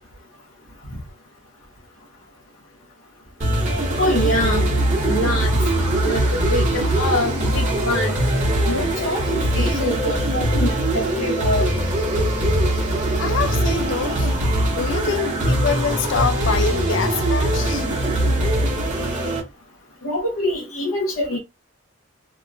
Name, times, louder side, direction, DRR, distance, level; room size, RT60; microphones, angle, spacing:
sound 1, 3.4-19.4, right 1 dB, 35° right, 0.9 m, -21 dB
voice 1, 4.0-4.7 5.0-5.5 6.0-8.1 8.7-11.7 20.0-21.4, equal, 80° left, 0.9 m, -24 dB
voice 2, 13.2-14.3 14.7-17.9, left 6 dB, 60° left, 0.4 m, -25 dB
2.9 x 2.1 x 2.5 m
head